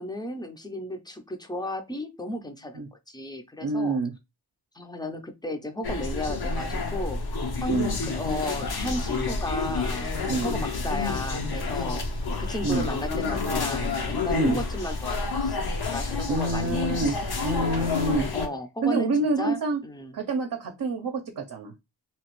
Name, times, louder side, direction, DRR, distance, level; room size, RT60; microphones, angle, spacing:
voice 1, 0.0-4.0 4.7-7.2 7.6-12.1 12.4-17.1 18.3-19.1 19.4-20.1, left 1 dB, 10° left, 0.6 m, -34 dB
voice 2, 3.6-4.1 7.7-8.0 10.3-10.6 12.6-12.9 14.3-14.6 16.3-17.1 17.4-18.3 18.8-19.8 20.1-21.7, right 3 dB, 55° right, 0.7 m, -27 dB
sound 1, 5.8-18.5, left 3 dB, 60° left, 0.8 m, -29 dB
2.9 x 2.4 x 3.0 m
wide cardioid pair, 80°, 43 cm